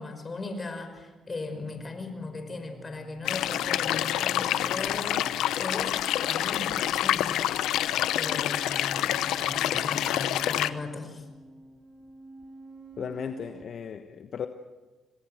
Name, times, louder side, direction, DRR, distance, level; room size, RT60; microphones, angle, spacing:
voice 1, 0.0-5.9 6.2-7.4 8.1-11.2, left 3 dB, 30° left, 7 dB, 5.4 m, -38 dB
sound 1, 0.9-13.6, right 2 dB, 35° right, 2.4 m, -50 dB
sound 2, 3.2-10.7, left 12 dB, 90° left, 0.9 m, -27 dB
voice 2, 13.0-14.5, left 7 dB, 55° left, 7 dB, 1.2 m, -36 dB
26.5 x 19.0 x 7.9 m, 1.3 s
cardioid pair, 90°, 0 cm